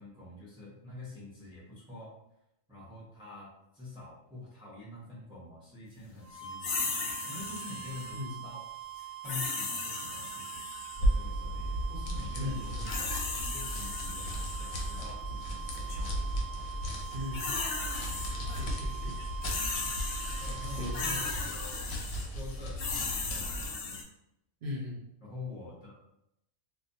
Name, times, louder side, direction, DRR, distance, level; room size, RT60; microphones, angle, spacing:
voice 1, 0.0-2.2 2.7-8.7 9.2-13.1 13.4-16.7 20.4-24.0 25.2-26.0, left 3 dB, 5° right, -7 dB, 0.6 m, -46 dB
sound 1, 6.2-21.5, right 11 dB, 85° right, 1.2 m, -44 dB
sound 2, 6.6-8.2 9.2-11.1 12.6-15.0 15.7-16.0 17.0-18.6 18.9-24.0, left 4 dB, 65° left, 0.6 m, -37 dB
sound 3, 10.9-23.8, equal, 90° left, 1.0 m, -35 dB
voice 2, 12.4-12.8 17.1-17.6 18.5-19.1 20.8-21.1 24.6-25.0, left 2 dB, 60° right, -2 dB, 0.6 m, -38 dB
2.5 x 2.2 x 2.6 m, 0.82 s
omnidirectional pair, 1.4 m